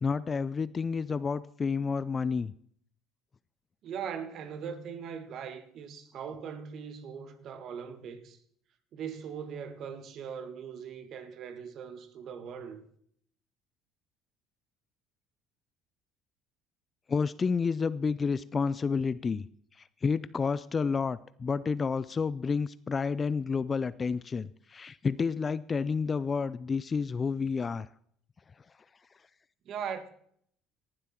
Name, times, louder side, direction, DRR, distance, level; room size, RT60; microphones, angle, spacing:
voice 1, 0.0-2.5 17.1-19.5 19.8-27.9, left 5 dB, 30° left, 0.4 m, -30 dB
voice 2, 3.8-8.4 8.9-12.8 29.7-30.1, right 7 dB, 55° right, 1.7 m, -40 dB
18.0 x 7.6 x 4.4 m
supercardioid pair, 90°, 0 cm